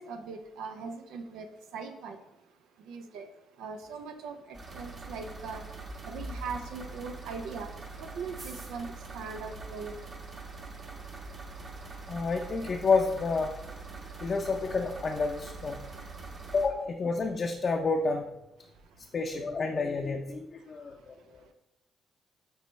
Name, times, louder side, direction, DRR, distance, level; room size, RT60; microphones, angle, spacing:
voice 1, 0.0-2.2 2.8-3.3 3.6-5.7 6.0-10.0, right 4 dB, 90° right, 6 dB, 0.5 m, -40 dB
sound 1, 4.5-16.7, right 4 dB, 40° right, 1.2 m, -44 dB
voice 2, 12.1-13.5 14.2-15.8 16.5-18.3 19.1-21.5, left 4 dB, 45° left, 2 dB, 0.5 m, -29 dB
9.2 x 3.3 x 3.1 m, 0.90 s
cardioid pair, 90°, 0 cm